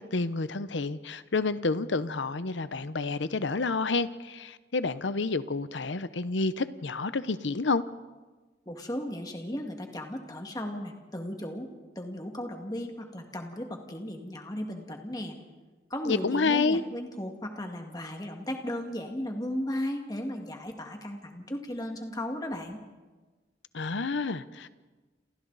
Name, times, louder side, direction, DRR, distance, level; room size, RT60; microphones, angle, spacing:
voice 1, 0.0-7.8 16.0-16.8 23.7-24.8, left 3 dB, 85° left, 14 dB, 0.8 m, -29 dB
voice 2, 8.7-11.7 12.0-15.4 15.9-22.8, left 1 dB, 20° left, 3 dB, 2.0 m, -35 dB
29.0 x 27.5 x 4.1 m, 1.3 s
head